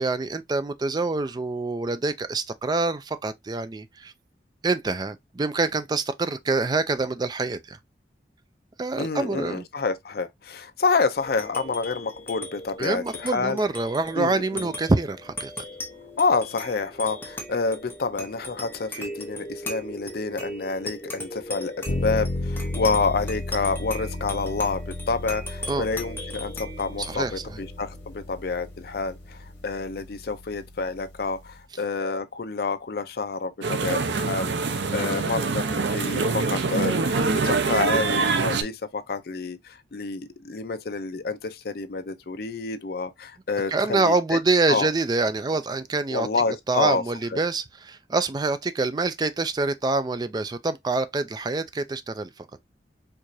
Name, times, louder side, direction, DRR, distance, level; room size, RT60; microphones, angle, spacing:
voice 1, 0.0-4.1 4.6-7.8 8.8-9.6 12.8-15.5 25.7-25.9 27.0-27.6 43.7-46.3 46.7-52.5, right 3 dB, 25° right, 0.3 m, -26 dB
voice 2, 8.9-13.6 14.2-14.7 16.2-44.4 44.7-44.9 46.1-47.0 47.3-47.4, left 4 dB, 55° left, 0.5 m, -28 dB
sound 1, 11.2-30.0, left 1 dB, 10° left, 0.9 m, -39 dB
sound 2, 21.9-31.6, left 2 dB, 90° left, 1.2 m, -34 dB
sound 3, 33.6-38.6, right 4 dB, 75° right, 0.6 m, -24 dB
4.6 x 2.5 x 2.6 m
head